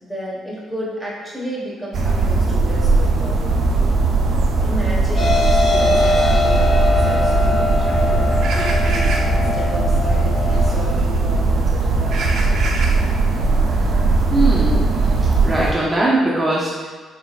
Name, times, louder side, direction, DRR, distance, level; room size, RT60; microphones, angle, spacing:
voice 1, 0.0-3.8 4.6-12.3 12.8-12.9, right 1 dB, 5° left, -6 dB, 1.3 m, -32 dB
sound 1, 1.9-15.7, right 3 dB, 70° right, 0.5 m, -18 dB
sound 2, 5.1-10.7, left 2 dB, 50° left, 1.4 m, -21 dB
voice 2, 14.3-14.9 15.4-16.9, right 1 dB, 25° right, -6 dB, 0.6 m, -20 dB
4.1 x 3.7 x 2.4 m, 1.5 s
cardioid pair, 90°, 0 cm